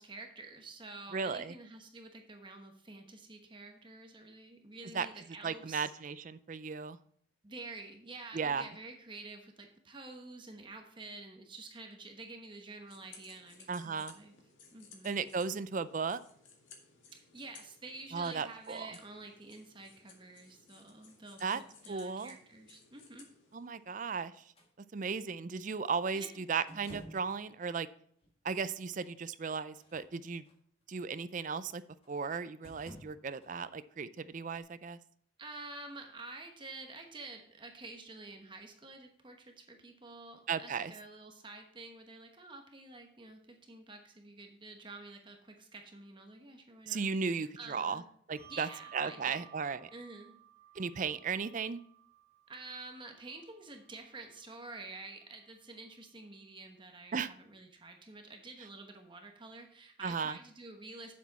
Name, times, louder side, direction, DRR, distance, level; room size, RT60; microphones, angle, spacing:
voice 1, 0.0-5.9 7.4-14.3 14.7-15.2 17.1-23.3 26.1-26.4 35.4-48.1 48.5-49.5 49.9-50.4 52.5-61.1, right 3 dB, 25° right, 4 dB, 1.0 m, -49 dB
voice 2, 1.1-1.5 4.9-5.1 5.4-7.0 8.3-8.7 13.7-14.1 15.0-16.2 18.1-18.9 21.4-21.6 21.9-22.4 23.5-24.3 24.9-27.9 28.4-30.4 30.9-31.8 32.1-35.0 40.5-40.9 46.9-48.0 48.3-49.9 50.8-51.8 57.1-57.3 60.0-60.4, right 5 dB, 40° right, 14 dB, 0.4 m, -35 dB
sound 1, 12.9-24.1, left 5 dB, 80° left, 1.9 m, -59 dB
sound 2, 24.5-24.7 26.7-27.4 28.2-28.3 29.6-30.6 32.0-32.2 32.6-33.5 34.5-34.6, equal, 30° left, 1.6 m, -52 dB
Bell, 48.4-55.2, right 12 dB, 10° right, 4.0 m, -59 dB
8.3 x 7.3 x 4.1 m, 0.64 s
head